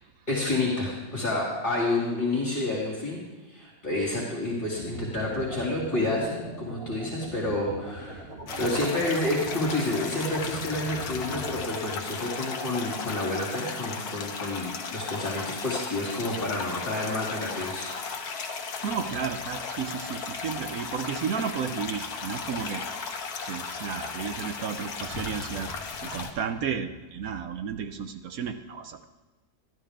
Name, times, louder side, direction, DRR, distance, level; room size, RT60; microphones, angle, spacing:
voice 1, 0.3-3.2 3.5-8.3 8.6-17.8, left 2 dB, 30° left, -5 dB, 2.7 m, -29 dB
sound 1, 4.7-11.6, right 2 dB, 35° right, 2.0 m, -40 dB
sound 2, 8.5-26.3, left 5 dB, 70° left, 1.4 m, -35 dB
voice 2, 18.8-23.1 23.4-25.7 26.0-29.1, right 7 dB, 65° right, 8 dB, 1.0 m, -33 dB
13.0 x 12.0 x 3.6 m, 1.2 s
omnidirectional pair, 1.7 m